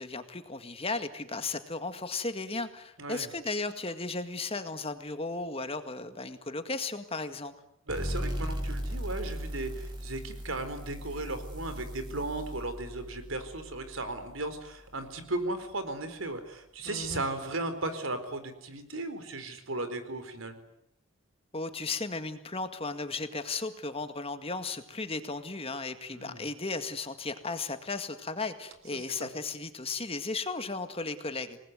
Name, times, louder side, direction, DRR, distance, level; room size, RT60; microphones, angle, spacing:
voice 1, 0.0-7.5 16.9-17.2 21.5-31.6, left 3 dB, 30° left, 8 dB, 2.0 m, -35 dB
voice 2, 3.0-3.3 7.9-20.6 26.1-26.5 28.9-29.0, right 2 dB, 85° right, 9 dB, 4.2 m, -36 dB
sound 1, 7.9-15.2, equal, 25° right, 7.3 m, -38 dB
28.0 x 20.0 x 9.4 m, 0.80 s
head